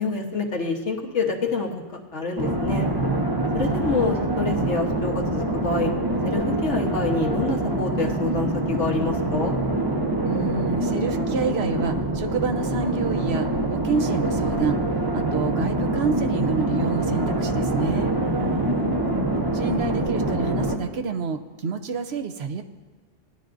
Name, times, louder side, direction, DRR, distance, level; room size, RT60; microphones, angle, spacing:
voice 1, 0.0-2.9 3.5-5.9 6.2-9.5 18.2-18.9, left 4 dB, 70° left, 1 dB, 1.6 m, -27 dB
sound 1, 2.4-20.8, right 1 dB, 20° right, 1.0 m, -25 dB
voice 2, 10.3-14.8 15.1-18.1 19.5-22.6, right 5 dB, 65° right, 7 dB, 0.9 m, -28 dB
19.5 x 11.0 x 2.6 m, 1.4 s
omnidirectional pair, 1.3 m